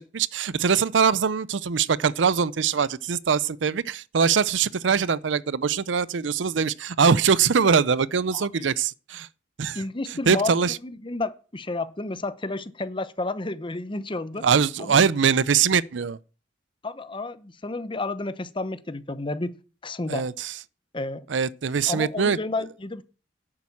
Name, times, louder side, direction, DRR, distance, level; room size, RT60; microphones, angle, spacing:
voice 1, 0.0-9.3 9.6-9.8 10.3-10.8 14.4-16.2 20.1-20.5 21.3-22.4, right 6 dB, 75° right, 0.5 m, -22 dB
voice 2, 8.3-8.6 9.7-10.5 10.8-14.4 14.8-15.0 16.8-19.6 19.8-20.2 20.9-21.3 21.9-23.0, left 2 dB, 25° left, 0.8 m, -31 dB
10.5 x 8.7 x 7.1 m
head